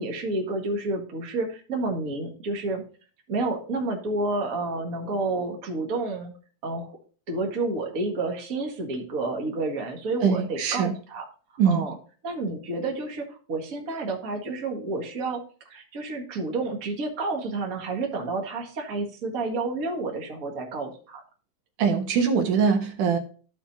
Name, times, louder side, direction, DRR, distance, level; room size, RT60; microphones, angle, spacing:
voice 1, 0.0-2.8 3.3-6.3 6.6-7.0 7.3-11.2 11.6-12.0 12.2-21.2, right 2 dB, 35° right, 1 dB, 1.6 m, -30 dB
voice 2, 10.2-11.0 11.6-11.8 21.8-23.2, right 6 dB, 80° right, 5 dB, 2.8 m, -22 dB
14.5 x 4.9 x 2.7 m, 0.39 s
omnidirectional pair, 3.6 m